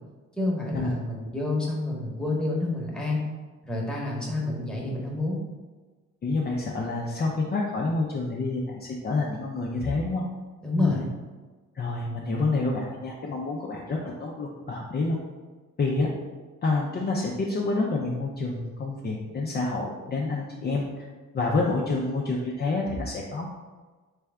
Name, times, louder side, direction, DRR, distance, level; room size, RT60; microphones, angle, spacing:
voice 1, 0.4-3.2 3.6-5.4 10.6-11.0, left 2 dB, 5° left, -4 dB, 1.1 m, -28 dB
voice 2, 6.2-10.2 10.8-11.0 11.8-15.2 15.8-16.1 16.6-20.8 21.3-23.5, left 3 dB, 35° left, -3 dB, 0.5 m, -28 dB
3.3 x 3.3 x 3.5 m, 1.3 s
cardioid pair, 90°, 30 cm